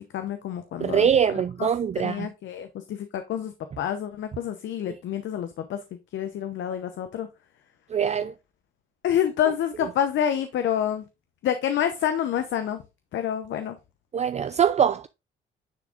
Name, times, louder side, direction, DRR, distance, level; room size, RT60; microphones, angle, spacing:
voice 1, 0.0-1.7 2.0-5.8 6.1-7.3 9.0-11.0 11.4-12.8 13.1-13.8, left 9 dB, 70° left, 0.8 m, -28 dB
voice 2, 0.8-2.3 7.9-8.3 14.1-15.1, right 8 dB, 35° right, 0.4 m, -23 dB
9.8 x 3.7 x 3.5 m
cardioid pair, 90°, 20 cm